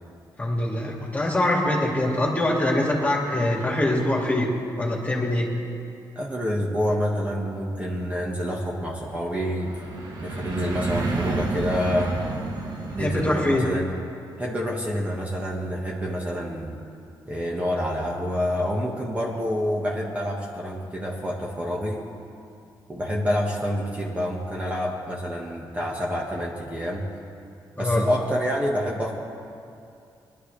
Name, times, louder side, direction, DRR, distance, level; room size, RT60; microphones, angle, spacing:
voice 1, 0.4-4.5 4.8-5.5 13.0-13.7 27.8-28.0, left 1 dB, 20° left, -2 dB, 2.4 m, -23 dB
voice 2, 6.1-9.8 10.2-12.1 12.9-13.9 14.4-16.8 17.3-22.1 22.9-27.1 27.8-29.1, equal, 20° right, -3 dB, 1.5 m, -27 dB
sound 1, 7.7-13.6, right 3 dB, 60° right, 1.6 m, -31 dB
21.5 x 11.5 x 3.4 m, 2.5 s
cardioid pair, 110°, 8 cm